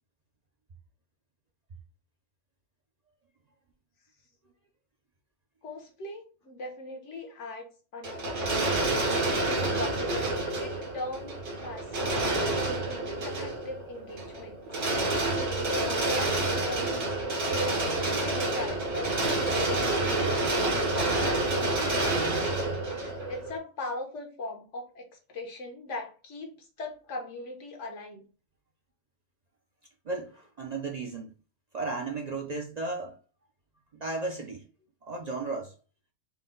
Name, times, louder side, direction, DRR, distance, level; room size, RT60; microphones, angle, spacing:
voice 1, 5.6-8.5 9.1-14.6 15.4-17.2 17.5-22.6 23.0-28.2, left 2 dB, 75° left, 1.4 m, -40 dB
sound 1, 8.0-23.6, right 2 dB, 70° right, 1.4 m, -28 dB
voice 2, 30.1-31.3 31.7-33.2 33.9-34.6 35.1-35.7, right 3 dB, 50° right, 0.5 m, -34 dB
4.4 x 2.2 x 3.7 m
omnidirectional pair, 1.2 m